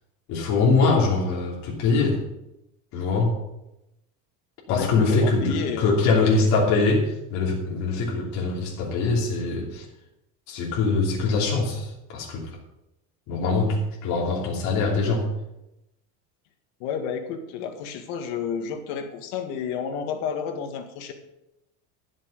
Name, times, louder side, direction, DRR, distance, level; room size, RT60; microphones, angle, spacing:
voice 1, 0.3-2.2 2.9-3.4 4.7-9.8 10.5-12.5 13.3-15.3, left 3 dB, 55° left, -3 dB, 3.1 m, -23 dB
voice 2, 4.7-6.0 16.8-21.1, left 7 dB, 85° left, 6 dB, 1.9 m, -31 dB
11.5 x 7.4 x 6.5 m, 0.90 s
cardioid pair, 155°, 34 cm